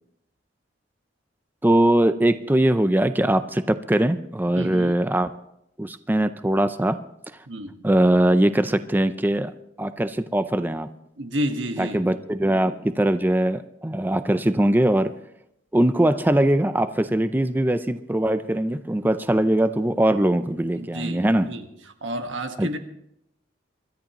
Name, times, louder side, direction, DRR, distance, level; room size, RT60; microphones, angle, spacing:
voice 1, 1.6-5.3 5.8-7.0 7.8-9.5 9.8-10.9 11.8-15.2 15.7-21.5 22.6-22.7, right 1 dB, 10° right, 11 dB, 0.4 m, -21 dB
voice 2, 4.6-4.9 7.5-7.8 11.2-12.0 20.8-21.6 22.0-22.8, equal, 90° right, 6 dB, 1.5 m, -30 dB
25.5 x 13.0 x 3.0 m, 0.78 s
head